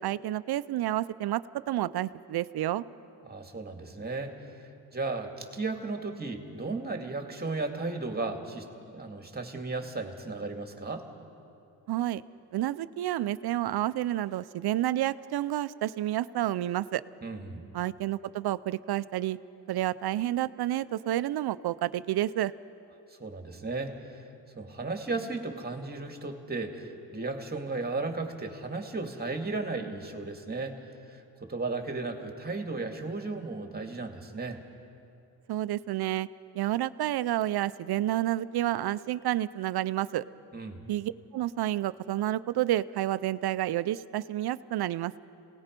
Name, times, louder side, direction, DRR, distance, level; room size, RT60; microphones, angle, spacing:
voice 1, 0.0-2.8 11.9-12.2 12.5-17.0 17.7-19.4 19.7-22.5 35.5-36.3 36.5-40.2 40.9-45.2, right 13 dB, 65° right, 16 dB, 0.7 m, -30 dB
voice 2, 3.2-8.7 8.9-11.1 17.2-17.6 23.1-24.3 24.6-30.8 31.1-34.6 40.5-40.8, right 3 dB, 25° right, 4 dB, 2.4 m, -35 dB
27.5 x 18.5 x 5.3 m, 2.7 s
cardioid pair, 75°, 41 cm